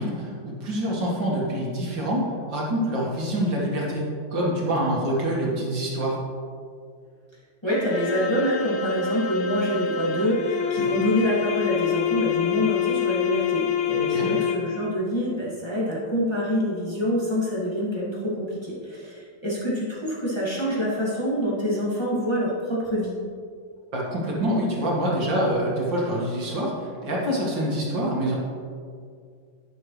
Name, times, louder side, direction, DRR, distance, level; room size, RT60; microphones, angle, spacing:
voice 1, 0.0-6.2 10.9-11.0 14.1-14.3 23.9-28.4, right 1 dB, 70° right, -4 dB, 2.6 m, -26 dB
voice 2, 7.6-23.1, equal, 15° left, -8 dB, 2.2 m, -26 dB
sound 1, 7.7-14.9, left 7 dB, 70° left, 0.6 m, -26 dB
11.0 x 9.8 x 3.3 m, 2.2 s
omnidirectional pair, 2.1 m